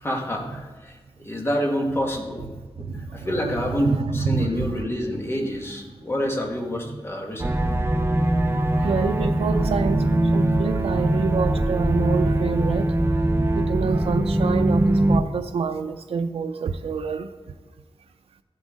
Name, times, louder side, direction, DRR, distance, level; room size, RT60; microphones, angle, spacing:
voice 1, 0.0-1.0 1.2-2.5 3.1-7.6, equal, 25° left, 0 dB, 1.6 m, -27 dB
voice 2, 2.6-4.9 6.8-7.0 8.5-12.9 13.5-17.3, right 5 dB, 80° right, 6 dB, 0.5 m, -27 dB
sound 1, 7.4-15.2, right 1 dB, 25° right, 0.6 m, -22 dB
14.5 x 7.8 x 3.7 m, 1.3 s
wide cardioid pair, 140°, 10 cm